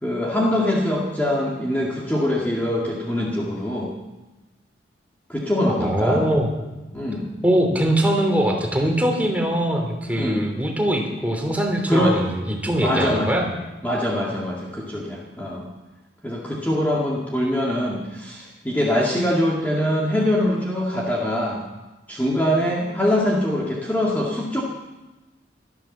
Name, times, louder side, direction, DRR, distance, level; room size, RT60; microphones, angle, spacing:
voice 1, 0.0-3.9 5.3-6.2 6.9-7.3 10.1-10.4 11.9-12.2 12.7-13.3 13.8-15.7 16.2-21.6 22.1-24.6, left 1 dB, 10° left, -4 dB, 2.1 m, -23 dB
voice 2, 5.8-6.5 7.4-13.5, right 1 dB, 10° right, 1 dB, 3.0 m, -22 dB
15.0 x 12.5 x 7.3 m, 1.1 s
head